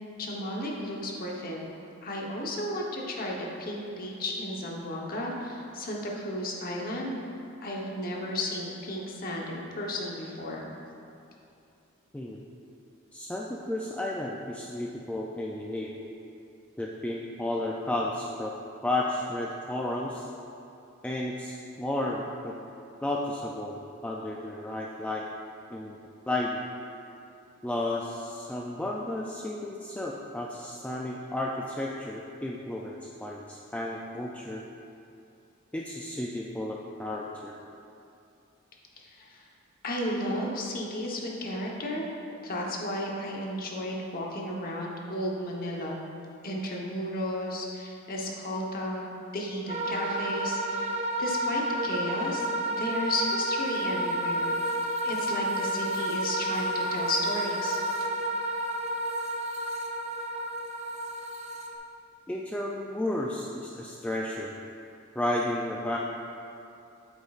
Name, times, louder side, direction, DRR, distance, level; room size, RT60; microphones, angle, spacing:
voice 1, 0.2-1.6 2.0-7.2 7.6-10.6 39.0-39.5 39.8-42.0 42.4-46.0 46.4-49.1 49.3-54.7 55.0-57.8, left 1 dB, 45° left, -2 dB, 1.0 m, -33 dB
voice 2, 12.1-12.5 13.1-15.9 16.8-18.5 18.8-20.3 21.0-22.5 23.0-25.3 25.7-26.0 26.3-26.6 27.6-32.9 33.2-34.6 35.7-37.5 62.3-64.5 65.2-66.0, left 1 dB, 5° left, -3 dB, 0.3 m, -32 dB
sound 1, 49.7-61.8, right 1 dB, 35° right, 0.6 m, -30 dB
8.3 x 8.1 x 2.4 m, 2.7 s
head